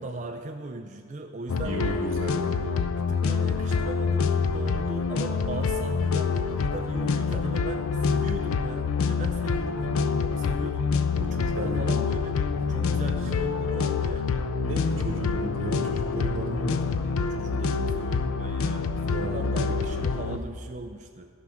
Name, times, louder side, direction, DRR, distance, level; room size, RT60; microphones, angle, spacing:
voice 1, 0.0-1.8 2.8-12.4 12.7-14.3 17.2-21.3, right 2 dB, 35° right, 4 dB, 0.5 m, -38 dB
sound 1, 1.5-20.4, left 5 dB, 75° left, 0.5 m, -26 dB
voice 2, 1.6-2.6 9.8-9.9 11.6-11.8 12.5-13.0 14.6-17.0 19.1-19.8, equal, 65° right, 0 dB, 2.0 m, -33 dB
14.0 x 6.3 x 5.7 m, 2.2 s
head